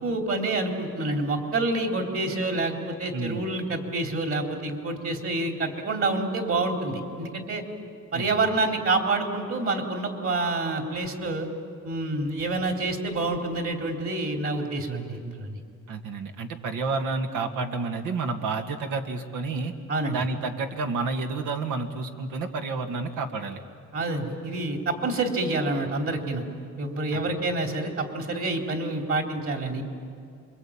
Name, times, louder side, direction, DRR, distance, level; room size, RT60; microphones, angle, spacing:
voice 1, 0.0-7.6 8.1-11.5 11.8-15.6 19.9-20.2 23.9-26.5 26.8-29.8, right 2 dB, 50° right, 4 dB, 3.8 m, -27 dB
voice 2, 3.1-3.5 8.1-8.5 15.9-19.7 20.1-23.6 27.1-27.2, right 4 dB, 85° right, 5 dB, 2.1 m, -30 dB
27.5 x 23.0 x 8.8 m, 2.3 s
cardioid pair, 90°, 30 cm